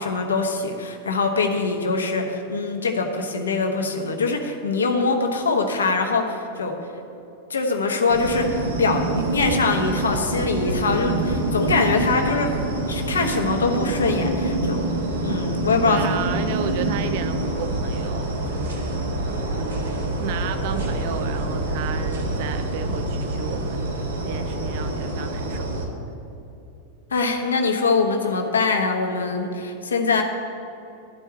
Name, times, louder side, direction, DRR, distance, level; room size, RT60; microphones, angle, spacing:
voice 1, 0.0-6.7 7.5-12.5 12.9-14.8 15.2-16.2 27.1-30.2, left 4 dB, 70° left, 4 dB, 1.1 m, -23 dB
sound 1, 8.1-25.8, right 2 dB, 70° right, 1.6 m, -26 dB
voice 2, 15.9-25.7, right 9 dB, 50° right, 10 dB, 0.4 m, -33 dB
12.0 x 4.6 x 8.4 m, 2.9 s
figure-of-eight pair, 90°, 0 cm